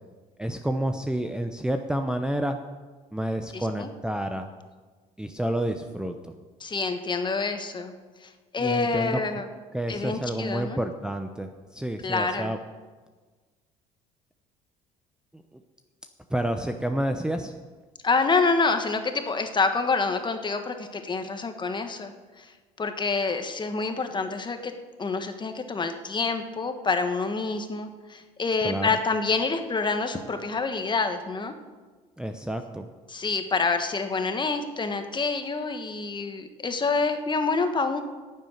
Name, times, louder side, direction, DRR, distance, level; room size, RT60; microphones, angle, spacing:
voice 1, 0.4-2.6 3.1-4.5 5.2-6.3 8.6-9.4 9.7-12.6 16.3-17.5 28.6-28.9 32.2-32.9, right 1 dB, 5° right, 6 dB, 0.8 m, -29 dB
voice 2, 3.5-3.9 6.6-7.9 8.5-9.5 9.9-10.8 12.0-12.5 18.0-22.1 22.4-22.5 22.8-24.7 25.0-31.5 33.1-38.0, left 4 dB, 25° left, 7 dB, 1.4 m, -27 dB
9.9 x 7.5 x 9.3 m, 1.4 s
supercardioid pair, 85°, 17 cm